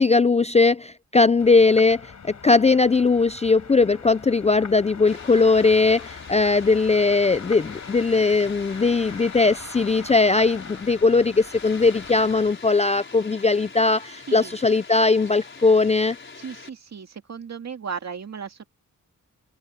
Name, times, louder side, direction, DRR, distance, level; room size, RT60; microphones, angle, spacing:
voice 1, 0.0-16.2, left 3 dB, 20° left, 0.4 m, -19 dB
sound 1, 1.4-12.5, left 6 dB, 60° left, 5.2 m, -42 dB
Water, 5.0-16.7, left 4 dB, 40° left, 5.5 m, -43 dB
voice 2, 16.4-18.6, right 6 dB, 55° right, 2.2 m, -35 dB
wide cardioid pair, 135°, 32 cm